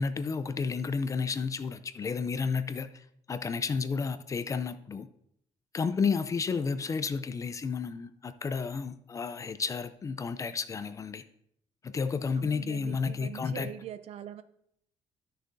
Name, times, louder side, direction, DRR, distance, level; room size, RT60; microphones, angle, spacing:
voice 1, 0.0-5.1 5.7-11.2 11.8-13.7, left 5 dB, 30° left, 12 dB, 0.4 m, -32 dB
voice 2, 12.4-14.4, right 10 dB, 60° right, 12 dB, 0.5 m, -43 dB
13.5 x 6.4 x 2.6 m, 0.72 s
cardioid pair, 145°, 12 cm